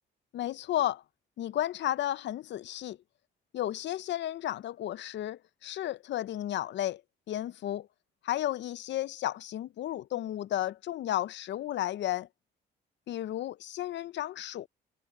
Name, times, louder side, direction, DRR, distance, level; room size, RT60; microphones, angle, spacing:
voice 1, 0.3-1.0 1.4-3.0 3.5-7.0 7.3-7.9 8.2-12.3 13.1-14.7, left 13 dB, 65° left, 0.5 m, -33 dB
cardioid pair, 90°, 20 cm